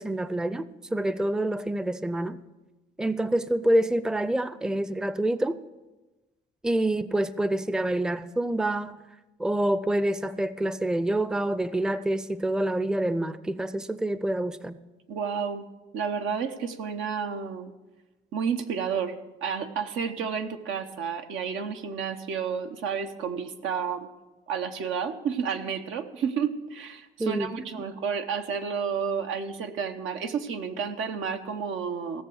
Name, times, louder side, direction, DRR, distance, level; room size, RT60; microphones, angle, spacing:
voice 1, 0.0-2.4 3.0-5.6 6.6-9.0 9.4-14.8 27.2-27.5 27.8-27.9, right 1 dB, 5° right, 0.5 m, -27 dB
voice 2, 15.1-15.7 15.9-17.7 18.3-19.1 19.4-24.1 24.5-32.2, right 6 dB, 85° right, 1.0 m, -31 dB
16.5 x 7.0 x 6.3 m
cardioid pair, 90°, 20 cm